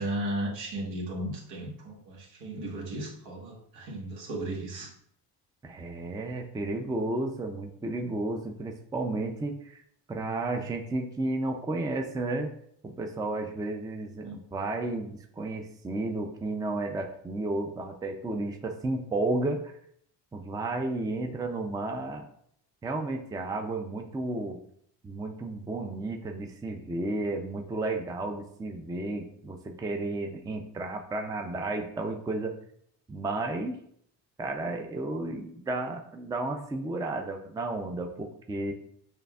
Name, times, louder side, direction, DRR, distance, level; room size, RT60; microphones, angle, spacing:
voice 1, 0.0-4.9 14.2-14.4, right 1 dB, 75° right, -2 dB, 1.5 m, -35 dB
voice 2, 5.6-9.8 10.1-12.5 12.8-19.8 20.3-22.3 22.8-24.6 25.0-32.5 33.1-33.8 34.4-38.7, right 2 dB, 10° right, 4 dB, 0.4 m, -32 dB
6.5 x 2.5 x 2.3 m, 0.68 s
cardioid pair, 90°, 43 cm